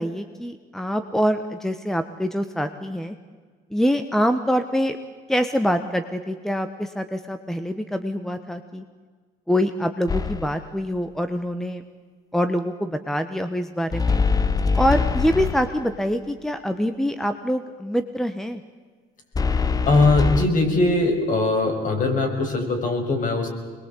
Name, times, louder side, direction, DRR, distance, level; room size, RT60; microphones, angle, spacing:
voice 1, 0.0-3.1 3.7-5.0 5.3-8.8 9.5-11.8 12.3-14.2 14.7-18.6, equal, ahead, 9 dB, 1.2 m, -25 dB
sound 1, 10.1-10.7 13.9-16.0 19.3-20.5, left 5 dB, 20° left, 1.0 m, -23 dB
voice 2, 19.9-23.5, left 2 dB, 50° left, 2 dB, 6.5 m, -21 dB
24.5 x 21.5 x 8.4 m, 1.5 s
cardioid pair, 110°, 17 cm